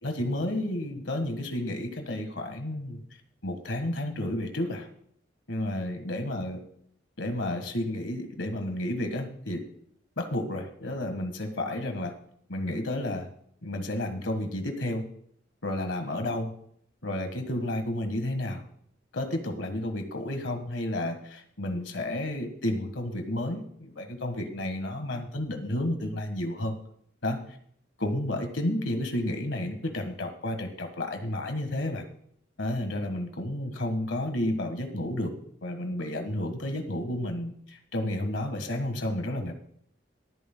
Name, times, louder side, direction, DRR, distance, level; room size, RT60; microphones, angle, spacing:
voice 1, 0.0-3.0 3.4-4.9 5.5-6.6 7.2-9.6 10.2-12.1 12.5-13.3 13.6-15.0 15.6-16.5 17.0-18.6 19.1-26.7 27.2-27.4 28.0-32.0 32.6-35.3 35.6-39.5, left 1 dB, 80° left, 6 dB, 1.6 m, -31 dB
22.5 x 9.4 x 2.2 m, 0.64 s
head